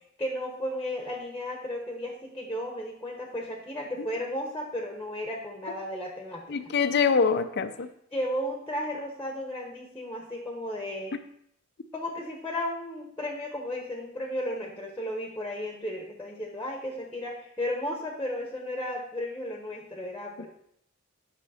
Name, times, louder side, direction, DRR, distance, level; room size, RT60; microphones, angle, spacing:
voice 1, 0.2-6.4 8.1-11.2 11.9-20.5, left 1 dB, 10° left, 0 dB, 1.2 m, -34 dB
voice 2, 6.5-7.9 20.4-20.5, left 5 dB, 55° left, 10 dB, 0.5 m, -25 dB
9.2 x 5.7 x 4.2 m, 0.73 s
head